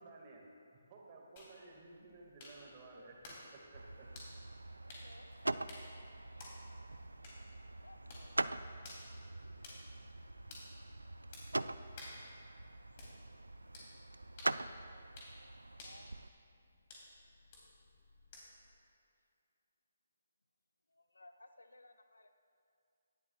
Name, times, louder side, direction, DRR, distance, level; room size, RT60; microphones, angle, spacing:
voice 1, 0.0-4.1, right 3 dB, 30° right, -1 dB, 2.1 m, -56 dB
sound 1, 1.4-18.7, left 2 dB, 35° left, 3.2 m, -56 dB
sound 2, 3.7-16.3, right 2 dB, 80° right, 0.3 m, -43 dB
voice 2, 4.8-5.4 7.8-8.4 15.7-16.1 20.9-22.4, left 2 dB, 75° left, 7 dB, 0.8 m, -61 dB
18.5 x 12.0 x 2.4 m, 2.4 s
figure-of-eight pair, 140°, 0 cm